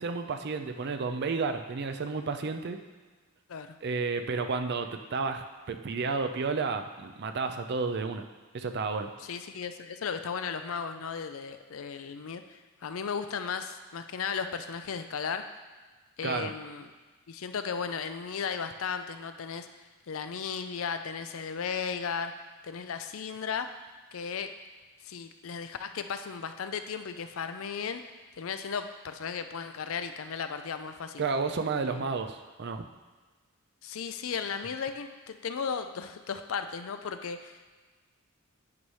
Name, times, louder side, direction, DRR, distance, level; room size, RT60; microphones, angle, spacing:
voice 1, 0.0-2.8 3.8-8.3 8.5-9.1 16.2-16.5 31.2-32.9, right 4 dB, 50° right, 7 dB, 0.5 m, -31 dB
voice 2, 9.2-15.5 16.2-16.9 17.3-22.3 22.6-23.7 24.1-24.5 25.0-28.0 28.4-31.2 31.9-32.1 33.8-37.7, left 6 dB, 65° left, 8 dB, 0.5 m, -35 dB
9.5 x 3.2 x 5.4 m, 1.4 s
head